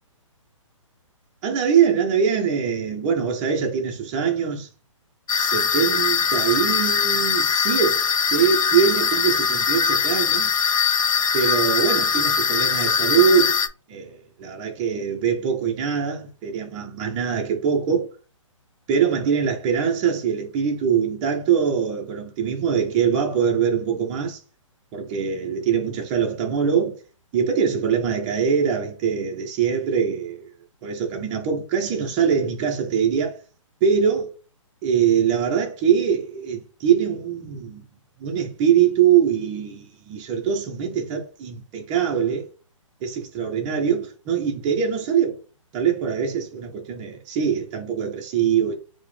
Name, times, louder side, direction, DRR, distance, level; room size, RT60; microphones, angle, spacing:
voice 1, 1.4-4.7 5.3-10.5 11.3-13.6 13.9-18.1 18.9-24.4 24.9-27.0 27.3-30.5 30.8-33.4 33.8-34.3 34.8-37.9 38.2-42.5 43.0-45.4 45.7-48.7, right 7 dB, 20° right, 0.4 m, -23 dB
sound 1, 5.3-13.7, left 6 dB, 85° left, 0.5 m, -21 dB
4.6 x 2.0 x 3.1 m
hypercardioid pair, 150°, 17 cm